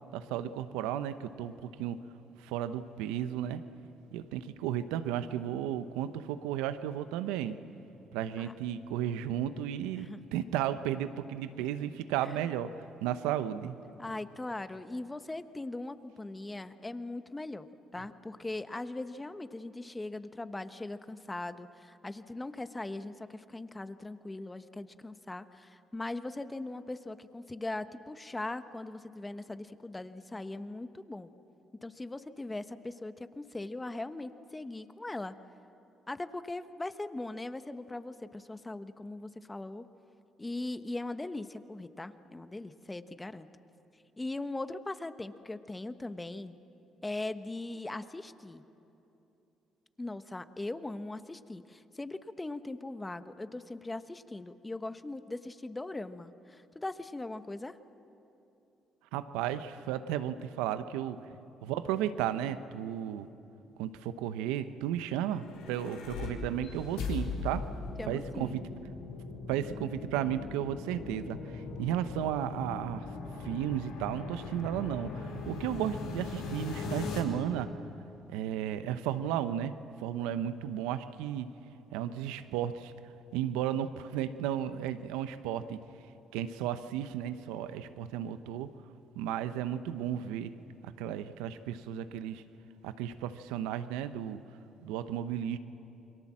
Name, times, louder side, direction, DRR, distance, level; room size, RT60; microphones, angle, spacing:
voice 1, 0.1-2.0 2.4-3.6 4.1-7.6 8.1-13.7 59.1-61.2 61.6-63.3 63.8-67.7 68.1-68.6 69.5-73.0 73.4-77.7 78.3-79.7 80.0-81.5 81.9-82.9 83.3-85.8 86.3-88.7 89.1-90.5 90.8-92.4 92.8-94.4 94.8-95.6, right 10 dB, 85° right, 12 dB, 0.9 m, -34 dB
voice 2, 14.0-17.7 17.9-31.3 31.8-35.3 36.1-39.9 40.4-43.5 44.2-46.6 47.0-48.6 50.0-57.8 68.0-68.6, left 2 dB, 20° left, 11 dB, 1.2 m, -40 dB
sound 1, 65.2-77.2, left 4 dB, 85° left, 3.8 m, -40 dB
29.0 x 22.5 x 7.5 m, 3.0 s
supercardioid pair, 60°, 0 cm